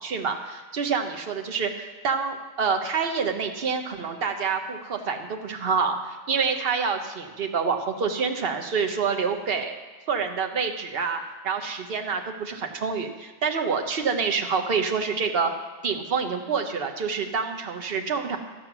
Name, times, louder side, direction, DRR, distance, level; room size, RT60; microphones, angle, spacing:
voice 1, 0.0-9.8 10.1-15.5 15.8-18.4, right 5 dB, 55° right, 5 dB, 1.2 m, -27 dB
12.5 x 8.8 x 6.1 m, 1.3 s
omnidirectional pair, 1.3 m